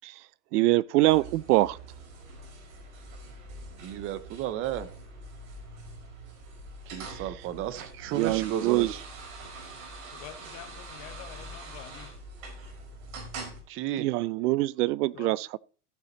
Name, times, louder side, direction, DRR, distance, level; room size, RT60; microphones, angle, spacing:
voice 1, 0.5-1.8 8.2-8.9 14.0-15.6, right 18 dB, 80° right, 0.6 m, -24 dB
sound 1, 1.1-13.6, right 2 dB, 60° right, 5.0 m, -44 dB
voice 2, 3.8-4.9 6.9-9.0 13.7-14.1, right 11 dB, 30° right, 0.8 m, -33 dB
voice 3, 10.1-12.1 15.1-15.3, left 13 dB, 40° left, 1.1 m, -46 dB
15.0 x 5.7 x 4.0 m
supercardioid pair, 155°, 45 cm